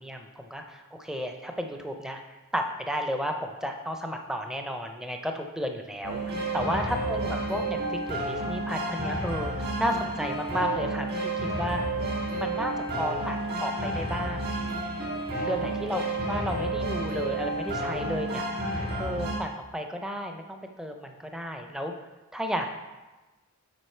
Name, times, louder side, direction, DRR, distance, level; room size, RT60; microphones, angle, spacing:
voice 1, 0.0-2.2 2.5-11.8 12.4-14.5 15.4-18.5 19.0-21.9 22.3-22.8, equal, 5° right, 4 dB, 0.5 m, -33 dB
sound 1, 6.0-19.4, right 2 dB, 45° right, 1.8 m, -31 dB
8.0 x 4.9 x 4.4 m, 1.2 s
head